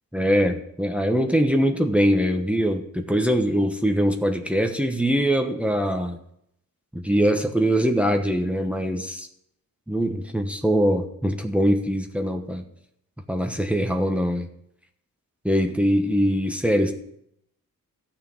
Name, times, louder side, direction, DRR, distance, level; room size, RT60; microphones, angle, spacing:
voice 1, 0.1-6.2 6.9-9.3 9.9-12.6 13.3-14.5 15.4-16.9, equal, 5° right, 4 dB, 1.1 m, -22 dB
14.0 x 5.9 x 8.6 m, 0.76 s
wide cardioid pair, 120°, 34 cm